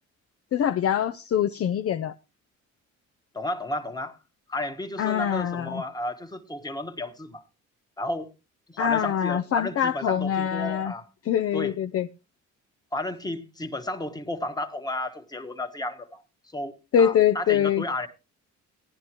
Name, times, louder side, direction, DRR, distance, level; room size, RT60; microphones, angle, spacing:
voice 1, 0.5-2.1 5.0-5.8 8.8-10.9 11.3-12.1 16.9-17.8, left 9 dB, 50° left, 0.5 m, -24 dB
voice 2, 3.3-4.2 4.5-7.4 8.0-8.3 8.7-11.1 11.5-11.8 12.9-16.2 16.5-18.1, left 1 dB, 15° left, 1.3 m, -33 dB
17.5 x 10.5 x 2.9 m
cardioid pair, 90°, 30 cm